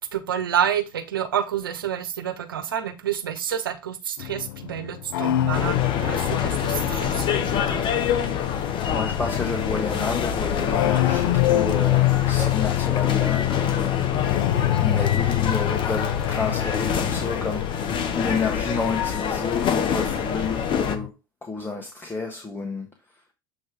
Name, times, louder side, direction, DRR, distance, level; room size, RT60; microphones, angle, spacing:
voice 1, 0.1-8.1, right 9 dB, 85° right, 1.1 m, -29 dB
sound 1, 4.2-20.0 20.3-21.1, left 15 dB, 75° left, 0.5 m, -26 dB
sound 2, 5.5-21.0, left 7 dB, 45° left, 1.1 m, -26 dB
voice 2, 8.9-14.3 14.8-21.1 21.4-22.9, left 4 dB, 20° left, 1.6 m, -30 dB
8.0 x 3.2 x 4.8 m
hypercardioid pair, 75°, 11 cm